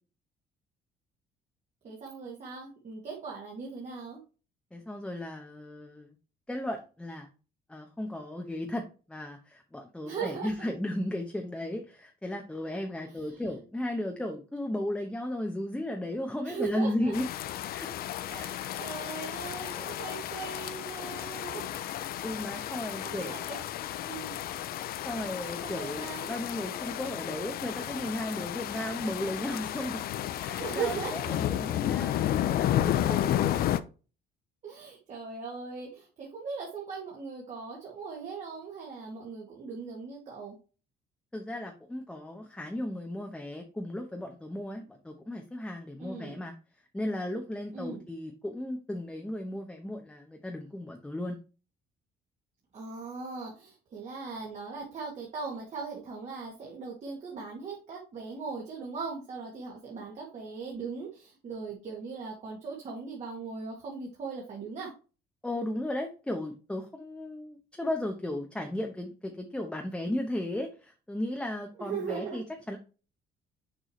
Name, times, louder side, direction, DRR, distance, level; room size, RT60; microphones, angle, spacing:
voice 1, 1.8-4.2 10.0-10.7 13.1-13.5 16.4-17.1 18.3-21.8 22.6-23.6 24.0-24.4 25.6-26.3 30.6-31.4 34.6-40.6 46.0-46.4 47.7-48.0 52.7-64.9 71.8-72.4, right 5 dB, 45° right, -3 dB, 2.0 m, -39 dB
voice 2, 4.7-6.1 6.5-7.3 7.7-17.3 17.7-17.9 18.3-18.6 22.2-23.3 25.0-30.0 30.4-33.4 41.3-46.5 46.9-51.4 65.4-72.8, left 1 dB, 5° left, 3 dB, 0.9 m, -35 dB
sound 1, 17.1-33.8, left 12 dB, 65° left, 0.5 m, -32 dB
6.5 x 4.8 x 3.1 m, 0.34 s
cardioid pair, 110°, 17 cm